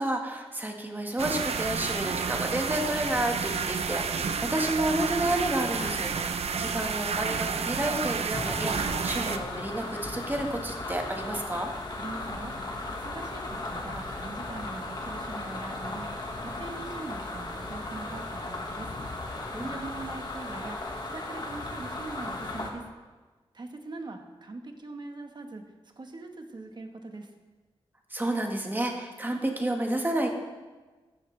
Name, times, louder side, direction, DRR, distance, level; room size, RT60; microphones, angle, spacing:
voice 1, 0.0-11.7 19.5-19.8 28.1-30.3, right 1 dB, 20° right, 2 dB, 1.6 m, -30 dB
sound 1, 1.2-9.4, right 5 dB, 80° right, 0.7 m, -30 dB
Clapping, 5.8-8.1, left 2 dB, 80° left, 2.1 m, -48 dB
sound 2, 8.3-22.7, left 2 dB, 45° left, 1.7 m, -36 dB
voice 2, 12.0-12.5 13.0-16.1 16.4-18.9 19.6-20.8 21.1-22.8 23.5-25.6 26.0-27.3, right 3 dB, 45° right, 4 dB, 1.3 m, -41 dB
14.0 x 10.5 x 3.3 m, 1.3 s
wide cardioid pair, 110°, 10 cm